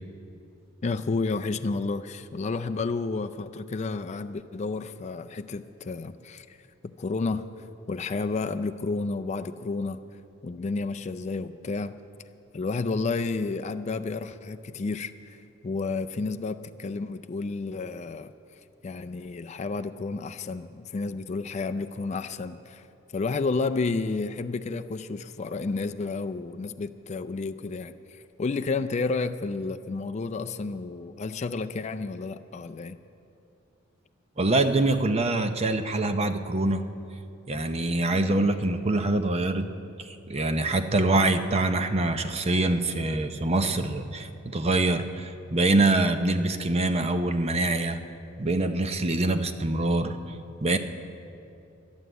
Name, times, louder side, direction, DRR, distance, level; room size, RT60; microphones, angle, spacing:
voice 1, 0.8-6.6 6.8-10.0 10.4-12.0 12.5-18.3 18.8-22.9 23.1-33.0, left 3 dB, 35° left, 9 dB, 0.4 m, -31 dB
voice 2, 34.4-36.8 37.5-39.7 40.1-48.0 48.4-50.2 50.6-50.8, right 2 dB, 30° right, 7 dB, 0.7 m, -25 dB
12.0 x 11.0 x 7.9 m, 2.7 s
head